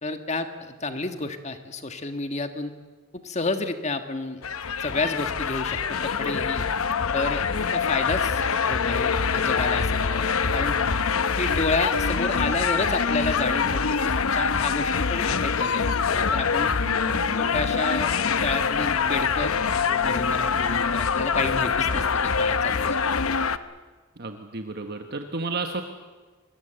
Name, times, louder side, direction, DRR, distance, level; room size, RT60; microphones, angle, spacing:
voice 1, 0.0-2.7 3.1-4.4 4.8-6.7 7.1-7.4 7.7-10.8 11.4-15.8 16.1-16.7 17.3-19.5 19.8-23.0, left 3 dB, 30° left, 7 dB, 1.6 m, -30 dB
sound 1, 4.4-23.6, left 5 dB, 80° left, 0.9 m, -24 dB
voice 2, 16.8-17.4 24.2-25.8, right 3 dB, 50° right, 5 dB, 1.2 m, -33 dB
26.0 x 21.5 x 8.0 m, 1.4 s
head